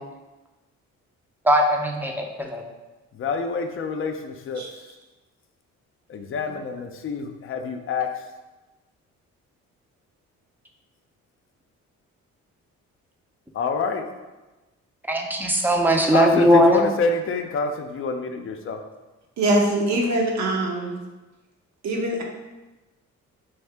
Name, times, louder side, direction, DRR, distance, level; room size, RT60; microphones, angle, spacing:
voice 1, 1.4-2.6 15.1-16.9, equal, 5° right, 1 dB, 0.5 m, -19 dB
voice 2, 3.1-4.6 6.1-8.2 13.5-14.0 16.1-18.8, left 4 dB, 45° left, 6 dB, 0.5 m, -27 dB
voice 3, 19.4-21.0 21.8-22.2, right 1 dB, 65° right, 1 dB, 0.8 m, -23 dB
3.4 x 2.7 x 3.3 m, 1.1 s
cardioid pair, 90°, 30 cm